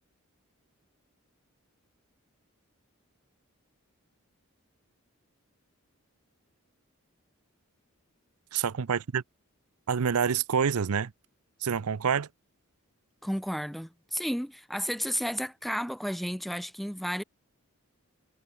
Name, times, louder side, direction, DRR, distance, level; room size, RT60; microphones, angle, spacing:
voice 1, 8.5-9.2 9.9-11.1 11.6-12.3, right 7 dB, 85° right, 0.6 m, -27 dB
voice 2, 13.2-17.2, equal, ahead, 0.6 m, -32 dB
head